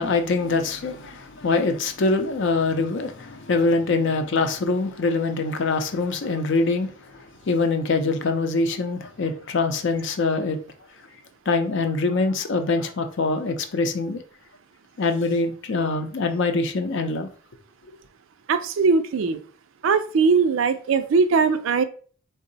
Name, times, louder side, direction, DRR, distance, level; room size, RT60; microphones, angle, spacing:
voice 1, 0.0-10.6 11.5-14.2 15.0-17.3 17.9-18.0, left 3 dB, 60° left, 0.5 m, -24 dB
voice 2, 18.5-19.4 19.8-21.8, right 5 dB, 70° right, 0.4 m, -20 dB
3.6 x 2.0 x 3.9 m
head